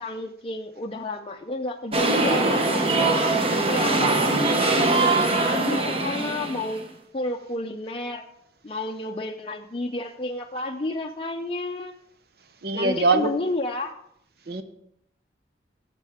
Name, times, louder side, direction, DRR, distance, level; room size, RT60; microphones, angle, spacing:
voice 1, 0.0-3.1 3.5-6.8 7.1-8.2 8.6-11.9 12.7-13.9, left 2 dB, 30° left, 2 dB, 0.5 m, -31 dB
sound 1, 1.9-6.9, right 2 dB, 30° right, 0.9 m, -22 dB
voice 2, 12.6-13.3 14.5-14.6, right 3 dB, 60° right, 10 dB, 0.8 m, -22 dB
13.0 x 7.5 x 3.5 m, 0.74 s
head